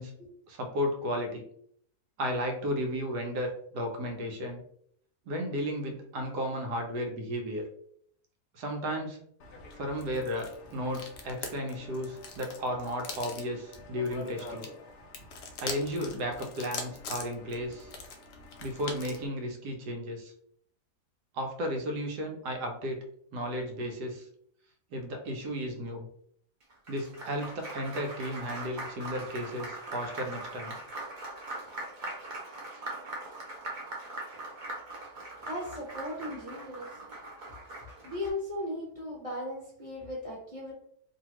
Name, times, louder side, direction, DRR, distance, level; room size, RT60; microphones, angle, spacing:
voice 1, 0.5-1.4 2.2-4.6 5.3-7.7 8.5-9.2 9.8-14.7 15.6-17.9 18.6-20.3 21.3-23.0 23.3-24.3 24.9-26.1 26.9-30.8, equal, 80° right, 3 dB, 1.3 m, -34 dB
sound 1, 9.4-19.3, left 4 dB, 75° left, 0.6 m, -43 dB
Applause, 26.6-38.3, right 2 dB, 45° right, 0.7 m, -41 dB
voice 2, 35.5-37.0 38.0-40.7, left 1 dB, 30° left, -6 dB, 0.7 m, -37 dB
2.8 x 2.7 x 2.9 m, 0.66 s
omnidirectional pair, 1.7 m